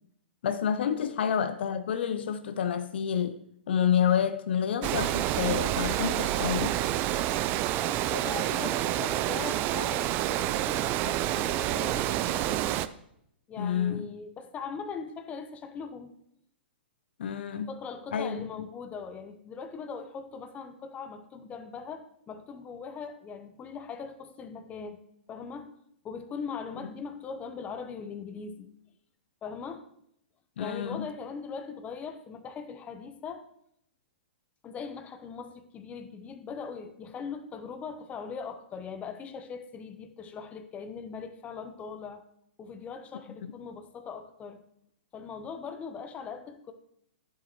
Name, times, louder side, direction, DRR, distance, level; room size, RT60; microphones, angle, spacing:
voice 1, 0.4-3.4 3.7-6.8 13.6-14.1 17.2-17.7 18.1-18.5 30.6-31.1, left 8 dB, 65° left, 0.5 m, -28 dB
Water, 4.8-12.9, right 13 dB, 35° right, 0.3 m, -28 dB
voice 2, 7.8-12.8 13.5-16.2 17.7-25.0 25.3-25.7 26.0-28.7 29.4-29.8 30.6-33.5 34.6-42.2 42.6-44.6 45.1-46.7, left 5 dB, 20° left, 0.8 m, -40 dB
10.5 x 7.3 x 3.0 m
hypercardioid pair, 120°, 6 cm